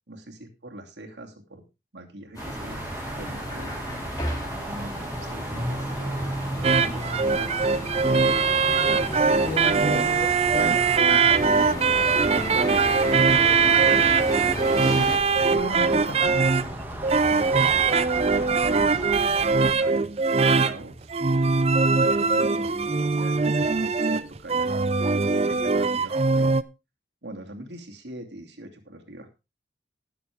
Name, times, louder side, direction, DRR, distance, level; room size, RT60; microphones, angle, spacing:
voice 1, 0.1-1.6 1.9-2.8 3.1-3.8 4.6-7.7 11.6-12.0 12.3-12.9 17.2-20.1 20.5-21.1 22.1-26.5 27.2-29.3, right 1 dB, 80° right, 2.7 m, -42 dB
sound 1, 2.3-15.2, equal, 20° left, 2.7 m, -34 dB
sound 2, 2.4-19.7, right 1 dB, 10° right, 2.0 m, -35 dB
sound 3, 6.6-26.6, right 4 dB, 35° right, 0.5 m, -22 dB
voice 2, 9.4-10.9 14.4-16.4, left 3 dB, 55° left, 1.0 m, -35 dB
19.0 x 7.0 x 3.6 m
head